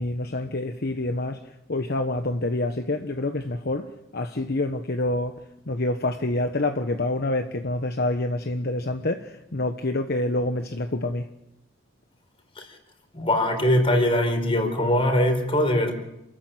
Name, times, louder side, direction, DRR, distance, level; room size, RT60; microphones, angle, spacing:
voice 1, 0.0-11.3, left 2 dB, 55° left, 1.2 m, -27 dB
voice 2, 13.1-15.9, left 1 dB, 30° left, 4.5 m, -21 dB
28.5 x 14.5 x 9.0 m
head